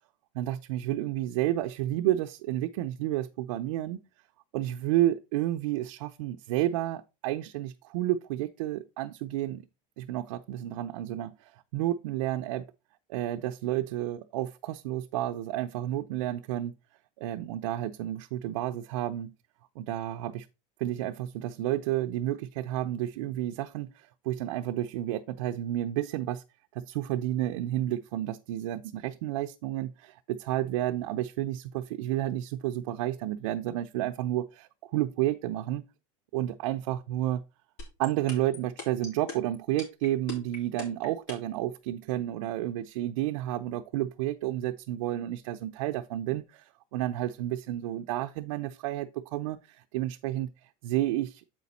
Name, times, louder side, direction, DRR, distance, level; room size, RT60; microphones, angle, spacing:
voice 1, 0.3-4.0 4.5-9.7 10.0-12.7 13.1-16.7 17.2-19.3 19.8-20.5 20.8-26.4 26.7-35.8 36.3-37.4 38.0-50.5 50.8-51.4, right 13 dB, 85° right, 0.6 m, -31 dB
sound 1, 37.8-41.6, left 4 dB, 60° left, 3.5 m, -39 dB
7.6 x 5.1 x 4.1 m
supercardioid pair, 150°, 17 cm